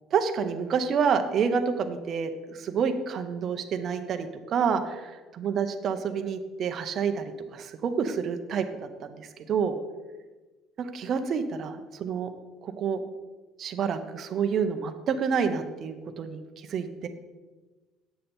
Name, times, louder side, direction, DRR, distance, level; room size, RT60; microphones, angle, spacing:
voice 1, 0.1-8.7 9.0-9.8 10.8-12.3 12.6-13.0 13.6-17.1, right 6 dB, 40° right, 7 dB, 0.7 m, -28 dB
9.0 x 6.6 x 4.3 m, 1.3 s
cardioid pair, 155°, 0 cm